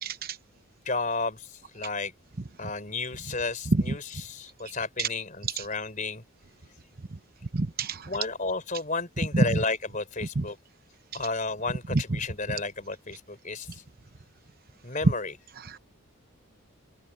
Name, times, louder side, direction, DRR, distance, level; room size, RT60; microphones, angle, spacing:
voice 1, 0.0-0.4 3.7-4.0 5.0-5.1 5.6-5.7 7.1-7.2 7.5-8.1 9.3-9.6 10.3-10.5 11.9-12.2 15.0-15.1 15.6-15.8, right 2 dB, 40° right, 0.9 m, -26 dB
voice 2, 0.9-2.1 2.6-4.0 4.3-6.2 8.1-10.6 11.1-13.7 14.8-15.3, left 3 dB, 35° left, 4.0 m, -32 dB
open air
head